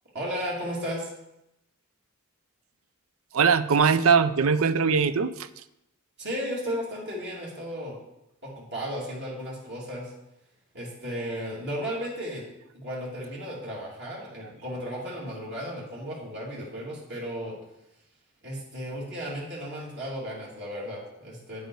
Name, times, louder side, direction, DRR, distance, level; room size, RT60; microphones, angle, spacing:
voice 1, 0.1-1.1 6.2-7.9 8.4-10.1 10.7-12.4 12.7-17.6 18.4-21.7, equal, 55° right, -5 dB, 2.8 m, -34 dB
voice 2, 3.3-5.5, right 5 dB, 75° right, 14 dB, 0.5 m, -21 dB
9.3 x 8.4 x 4.7 m, 0.87 s
head